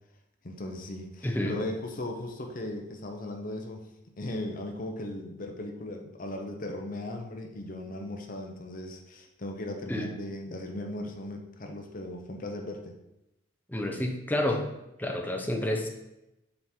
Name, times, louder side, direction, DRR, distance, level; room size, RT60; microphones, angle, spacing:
voice 1, 0.4-3.9 4.2-12.9, left 1 dB, 45° left, 3 dB, 0.8 m, -37 dB
voice 2, 1.2-1.6 9.9-10.1 13.7-14.7 15.0-15.9, left 1 dB, 10° left, 2 dB, 0.7 m, -29 dB
7.7 x 3.7 x 4.4 m, 0.91 s
head